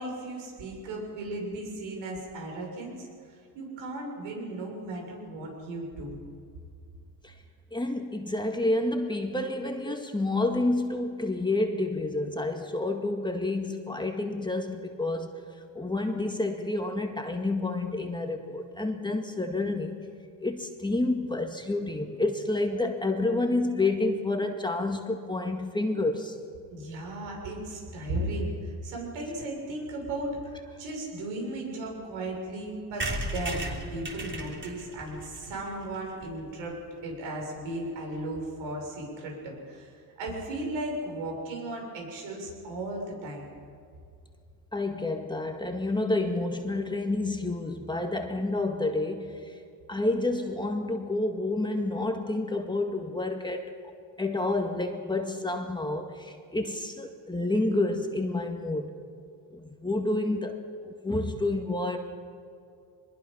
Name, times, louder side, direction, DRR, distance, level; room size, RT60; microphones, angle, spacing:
voice 1, 0.0-6.2 26.7-30.5 30.8-36.7 37.0-43.5, right 1 dB, 80° right, 0 dB, 7.4 m, -36 dB
voice 2, 7.7-15.4 15.7-20.1 20.4-26.4 44.7-49.6 49.9-53.7 54.2-58.9 59.5-62.0, left 2 dB, 10° left, 4 dB, 2.0 m, -29 dB
sound 1, 33.0-36.7 37.1-37.2 37.4-37.5 37.7-37.8 38.0-38.3, right 1 dB, 25° right, 3.4 m, -36 dB
23.5 x 21.5 x 5.8 m, 2.3 s
supercardioid pair, 95°, 45 cm